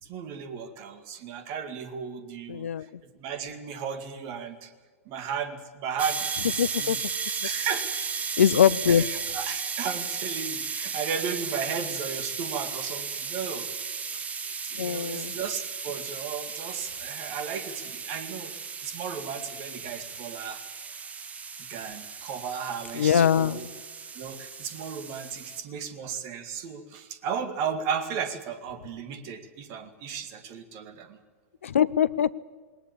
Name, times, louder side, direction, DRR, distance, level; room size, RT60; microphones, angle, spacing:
voice 1, 0.0-4.7 5.1-7.9 8.9-13.7 14.1-14.3 14.7-20.6 21.6-23.7 24.1-31.2, right 7 dB, 40° right, 10 dB, 2.2 m, -35 dB
voice 2, 2.5-2.9 6.6-7.0 8.4-9.1 14.8-15.3 22.9-23.6 31.6-32.4, left 8 dB, 65° left, 17 dB, 0.6 m, -22 dB
sound 1, 6.0-25.6, right 5 dB, 20° right, 1.5 m, -35 dB
19.5 x 19.5 x 8.5 m, 1.5 s
figure-of-eight pair, 95°, 8 cm